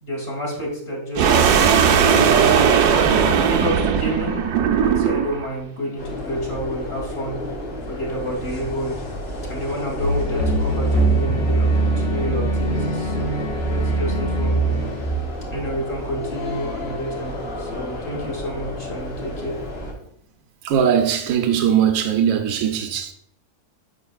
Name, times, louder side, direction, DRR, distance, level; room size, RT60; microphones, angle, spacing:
voice 1, 0.0-2.9 3.4-7.4 7.9-9.0 9.5-13.4 13.7-14.9 15.5-19.6, equal, 40° left, 2.0 m, -29 dB
sound 1, 1.2-5.5, right 7 dB, 90° right, 1.2 m, -17 dB
sound 2, 6.0-19.9, left 1 dB, 65° left, 2.4 m, -32 dB
sound 3, 10.0-15.7, right 2 dB, 85° left, 2.3 m, -22 dB
voice 2, 20.6-23.1, right 8 dB, 70° right, 1.1 m, -20 dB
8.8 x 5.6 x 2.4 m
omnidirectional pair, 1.6 m